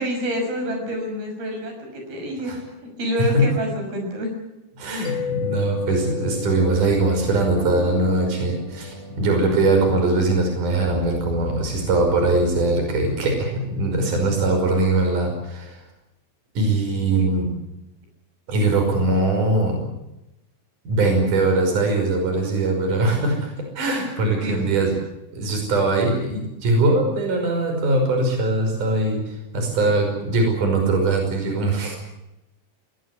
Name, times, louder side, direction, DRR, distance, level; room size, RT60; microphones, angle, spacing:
voice 1, 0.0-2.5 2.8-4.3 17.2-17.3 24.4-24.7, equal, 85° right, 3 dB, 8.1 m, -27 dB
voice 2, 4.8-15.8 16.5-17.5 18.5-19.9 20.8-24.9 25.3-32.0, right 2 dB, 55° right, 3 dB, 7.0 m, -21 dB
Mallet percussion, 5.1-8.5, left 8 dB, 75° left, 2.7 m, -32 dB
sound 1, 5.1-13.4, left 3 dB, 25° left, 6.5 m, -37 dB
22.0 x 19.5 x 9.7 m, 0.93 s
omnidirectional pair, 4.2 m